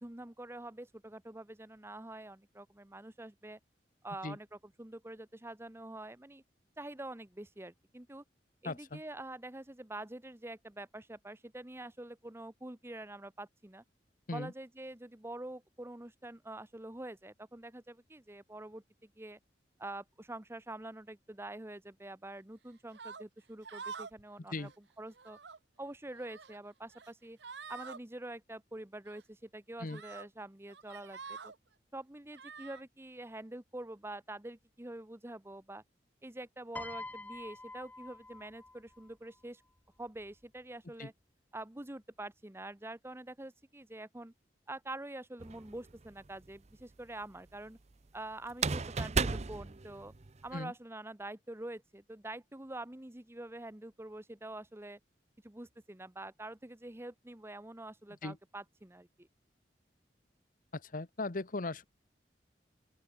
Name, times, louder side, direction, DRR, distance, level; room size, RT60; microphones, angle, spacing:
voice 1, 0.0-3.6 4.0-6.4 6.8-8.2 8.6-13.8 14.3-19.4 19.8-24.7 25.0-25.4 25.8-27.4 27.7-31.5 31.9-35.8 36.2-39.6 40.0-41.1 41.5-44.3 44.7-47.8 48.1-50.1 50.4-55.0 55.4-59.3, right 1 dB, 15° right, 1.0 m, -46 dB
voice 2, 8.6-9.0 14.3-14.5 24.5-24.7 29.8-30.0 41.0-41.1 50.5-50.7 58.2-58.4 60.7-61.8, left 2 dB, 50° left, 1.0 m, -38 dB
sound 1, 22.9-23.2 23.6-24.2 24.5-24.7 25.1-25.6 26.1-26.6 26.9-27.1 27.4-28.0 29.1-29.2 29.9-30.3 30.7-31.6 32.3-32.8, right 5 dB, 80° right, 1.2 m, -47 dB
Piano, 36.7-39.1 40.1-40.4, left 2 dB, 10° left, 0.5 m, -46 dB
sound 2, 45.4-46.1 48.5-50.5, right 4 dB, 40° right, 0.7 m, -34 dB
open air
head